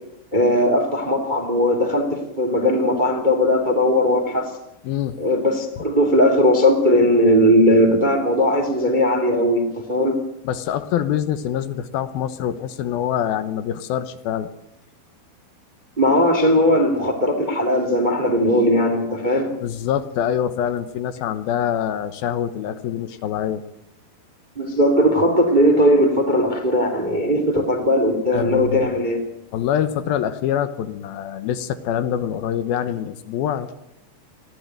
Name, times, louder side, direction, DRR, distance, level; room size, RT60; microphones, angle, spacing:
voice 1, 0.3-4.5 5.2-10.1 16.0-19.5 24.6-29.2, left 1 dB, 15° right, 4 dB, 2.2 m, -18 dB
voice 2, 4.8-5.2 10.4-14.5 19.6-23.6 28.3-28.9 29.5-33.7, left 10 dB, 70° left, 12 dB, 2.6 m, -25 dB
20.5 x 15.5 x 9.1 m, 0.83 s
omnidirectional pair, 4.9 m